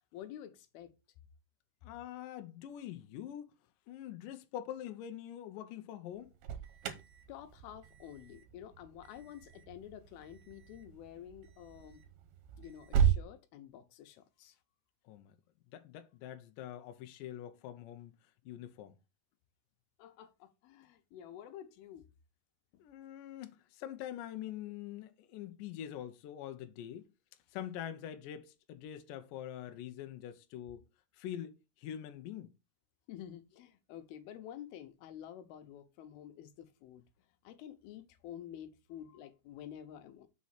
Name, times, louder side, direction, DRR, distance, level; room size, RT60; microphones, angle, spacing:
voice 1, 0.1-0.9 7.3-12.0 12.6-14.6 20.0-22.1 33.1-37.0 37.4-40.3, left 10 dB, 75° left, 2.5 m, -50 dB
voice 2, 1.8-3.5 3.9-6.3 15.1-15.4 15.7-18.1 18.5-19.0 22.8-27.1 27.5-30.8 31.1-32.5, left 11 dB, 90° left, 1.9 m, -44 dB
Alarm, 6.1-13.3, right 8 dB, 75° right, 2.6 m, -36 dB
6.2 x 4.1 x 5.7 m
omnidirectional pair, 4.7 m